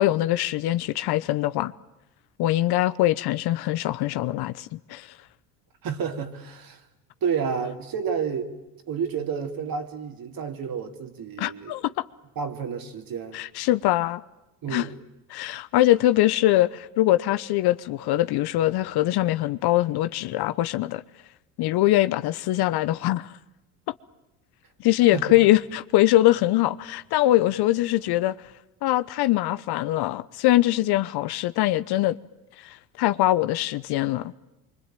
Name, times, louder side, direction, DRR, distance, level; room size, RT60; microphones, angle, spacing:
voice 1, 0.0-1.7 2.4-5.1 11.4-12.0 13.3-14.2 14.7-14.9 15.3-21.0 21.6-23.3 24.8-28.3 28.8-32.2 32.6-34.3, left 15 dB, 55° left, 0.9 m, -22 dB
voice 2, 5.8-6.8 7.2-8.5 8.9-11.7 12.4-13.4 14.6-15.0 25.1-25.4, right 6 dB, 45° right, 3.1 m, -30 dB
25.5 x 24.0 x 9.1 m
hypercardioid pair, 75°, 47 cm